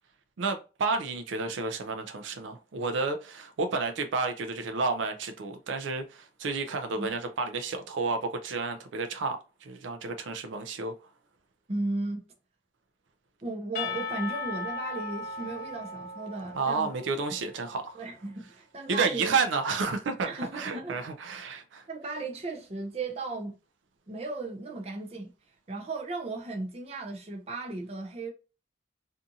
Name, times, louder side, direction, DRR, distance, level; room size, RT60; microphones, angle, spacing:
voice 1, 0.4-10.9 16.5-18.0 18.9-21.9, right 4 dB, 85° right, 0.4 m, -31 dB
voice 2, 11.7-12.2 13.4-16.9 17.9-19.3 20.2-21.0 21.9-23.5 24.1-25.3 25.7-28.3, right 2 dB, 35° right, 0.5 m, -35 dB
Percussion / Church bell, 13.7-17.6, left 3 dB, 50° left, 0.6 m, -37 dB
2.6 x 2.4 x 2.7 m
head